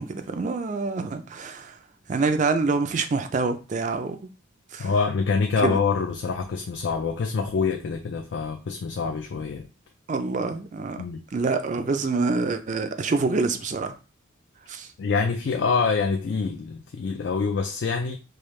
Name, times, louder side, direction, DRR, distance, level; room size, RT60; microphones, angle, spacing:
voice 1, 0.0-1.8 2.1-4.2 4.7-4.9 5.6-5.8 10.1-11.0 11.3-13.9 14.7-14.9, right 4 dB, 35° right, 0.3 m, -26 dB
voice 2, 4.8-9.7 11.0-11.2 15.0-18.2, left 5 dB, 55° left, 0.3 m, -26 dB
4.9 x 2.2 x 3.1 m
head